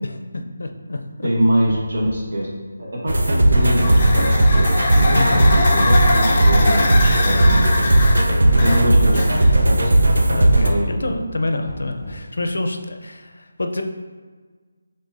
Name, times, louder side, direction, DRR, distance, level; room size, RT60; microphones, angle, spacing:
voice 1, 0.0-1.3 3.2-3.3 5.1-5.5 8.4-8.8 10.4-13.8, left 2 dB, 80° left, 5 dB, 0.5 m, -27 dB
voice 2, 1.2-2.5 2.8-7.9 8.6-9.9 10.6-11.2, equal, 55° right, -4 dB, 1.3 m, -24 dB
sound 1, 1.6-2.3 3.6-4.2 5.7-6.3 7.7-8.2 9.6-10.2 11.6-12.4, equal, 5° right, 0.8 m, -36 dB
sound 2, 3.1-10.7, right 1 dB, 85° right, 0.6 m, -16 dB
sound 3, 3.5-9.7, left 2 dB, 25° left, 0.5 m, -24 dB
5.2 x 3.6 x 2.6 m, 1.4 s
figure-of-eight pair, 175°, 0 cm